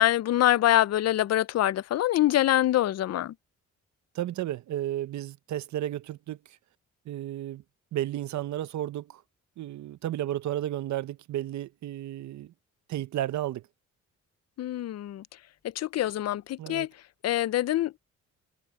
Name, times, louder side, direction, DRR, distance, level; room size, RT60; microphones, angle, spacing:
voice 1, 0.0-3.3 14.6-15.4 15.6-18.0, left 13 dB, 55° left, 0.6 m, -25 dB
voice 2, 4.1-6.6 7.1-7.6 7.9-9.2 9.6-12.5 12.9-13.6 16.6-16.9, right 13 dB, 70° right, 0.9 m, -33 dB
cardioid pair, 90°, 30 cm